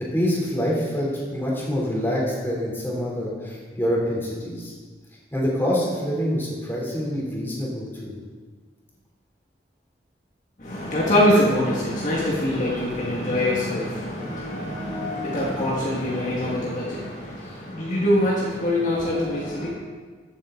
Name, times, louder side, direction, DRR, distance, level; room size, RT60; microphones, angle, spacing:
voice 1, 0.1-4.7 5.3-8.1 17.4-17.5, equal, 15° left, -5 dB, 3.2 m, -26 dB
voice 2, 10.6-19.7, left 1 dB, 45° left, -6 dB, 1.8 m, -24 dB
15.0 x 8.2 x 3.8 m, 1.5 s
head